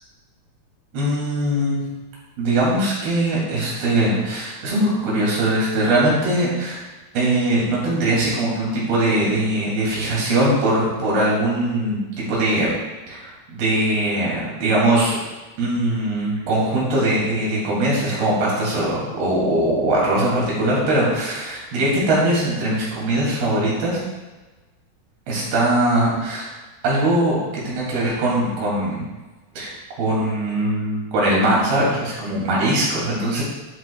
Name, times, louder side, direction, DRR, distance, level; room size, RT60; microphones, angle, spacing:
voice 1, 0.9-1.8 2.4-6.8 7.1-12.0 12.3-12.7 13.1-15.2 15.6-24.0 25.3-26.5 26.8-29.0 29.6-33.4, right 1 dB, 90° right, -5 dB, 4.4 m, -21 dB
11.0 x 8.3 x 2.3 m, 1.2 s
omnidirectional pair, 4.3 m